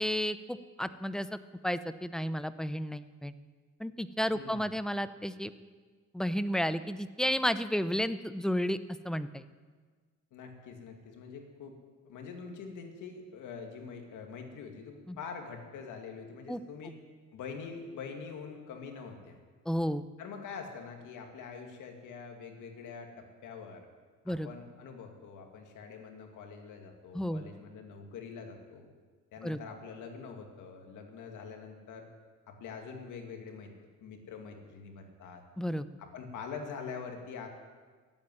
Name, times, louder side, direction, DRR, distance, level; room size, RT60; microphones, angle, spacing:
voice 1, 0.0-1.4 1.6-3.3 3.8-5.5 6.1-8.8 9.0-9.4 15.1-15.2 16.5-16.6 19.7-20.0 24.3-24.5 27.1-27.5 29.4-29.6 35.6-35.9, equal, ahead, 12 dB, 0.7 m, -32 dB
voice 2, 4.3-4.7 10.3-11.8 12.0-16.9 17.3-19.4 20.2-23.9 24.3-28.9 29.3-32.1 32.5-33.7 34.0-35.4 36.0-37.5, left 5 dB, 85° left, 3 dB, 2.3 m, -44 dB
15.0 x 8.8 x 9.9 m, 1.5 s
cardioid pair, 90°, 30 cm